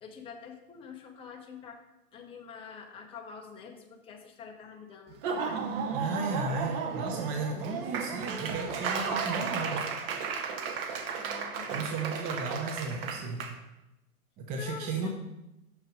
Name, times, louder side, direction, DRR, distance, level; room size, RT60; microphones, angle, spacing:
voice 1, 0.0-1.8 2.1-5.8 11.2-11.8 14.5-15.1, left 6 dB, 15° left, 2 dB, 0.7 m, -46 dB
Laughter / Applause, 5.1-13.5, right 5 dB, 40° right, 1.0 m, -34 dB
voice 2, 5.9-9.9 11.7-13.4 14.4-15.1, right 3 dB, 20° right, 2 dB, 0.5 m, -34 dB
6.4 x 6.1 x 5.0 m, 0.94 s
hypercardioid pair, 130°, 43 cm